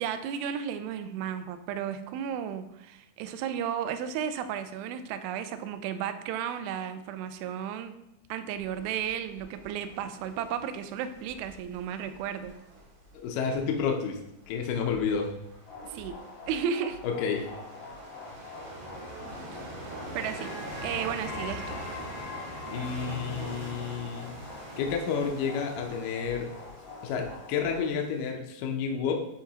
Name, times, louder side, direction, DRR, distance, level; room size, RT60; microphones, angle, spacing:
voice 1, 0.0-8.0 8.3-12.5 15.8-16.2 16.5-17.0 19.4-19.7 20.2-20.6 20.8-21.8, right 8 dB, 80° right, 10 dB, 2.3 m, -34 dB
sound 1, 8.5-28.3, right 1 dB, 55° right, 2.7 m, -45 dB
voice 2, 13.1-14.2 14.5-15.4 17.0-17.5 22.7-24.3 24.8-26.5 27.0-29.1, left 6 dB, 80° left, 2 dB, 2.0 m, -30 dB
sound 2, 15.7-27.9, left 3 dB, 60° left, 2.2 m, -43 dB
10.0 x 3.8 x 2.8 m, 0.85 s
omnidirectional pair, 4.4 m